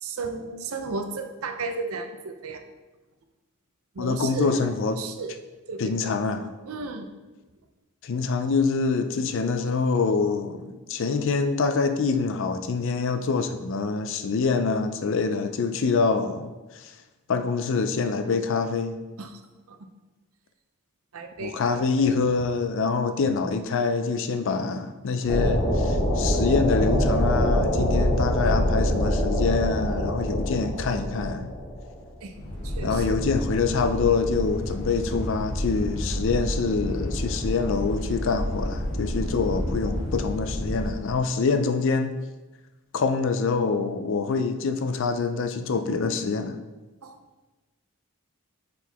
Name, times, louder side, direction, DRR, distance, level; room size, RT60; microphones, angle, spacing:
voice 1, 0.0-2.6 3.9-5.4 5.7-6.1 6.7-7.1 19.2-19.4 19.7-19.8 21.1-22.2 32.2-32.3 32.6-33.2 47.0-47.2, right 4 dB, 75° right, 6 dB, 0.6 m, -34 dB
voice 2, 4.0-5.0 5.8-6.5 8.0-16.9 17.3-19.0 21.4-31.5 32.8-42.1 42.9-46.6, left 4 dB, 60° left, 9 dB, 0.4 m, -25 dB
sound 1, 25.3-40.9, equal, 85° left, 1.5 m, -26 dB
6.1 x 4.5 x 3.5 m, 1.1 s
head